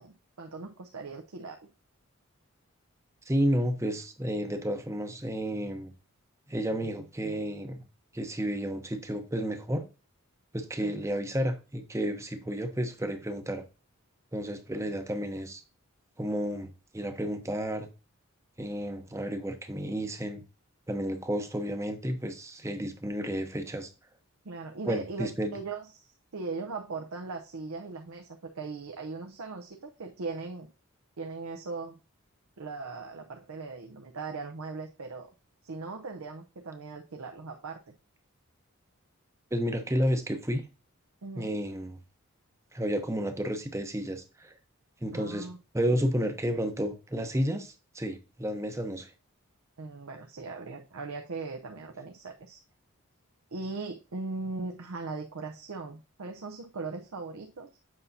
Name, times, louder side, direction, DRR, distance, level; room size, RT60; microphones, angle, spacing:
voice 1, 0.0-1.6 10.8-10.9 24.4-30.7 31.2-32.0 32.6-35.3 35.6-37.9 41.2-41.6 45.1-45.6 49.8-52.6 53.5-57.8, right 3 dB, 80° right, 0.7 m, -39 dB
voice 2, 3.3-5.9 6.5-7.8 8.1-9.8 10.5-13.6 14.3-15.6 16.2-17.9 18.6-20.4 20.9-23.9 24.9-25.6 39.5-40.6 41.4-42.0 42.7-44.5 45.0-45.5 45.7-49.1, equal, 15° right, 0.7 m, -31 dB
7.9 x 5.5 x 2.7 m
head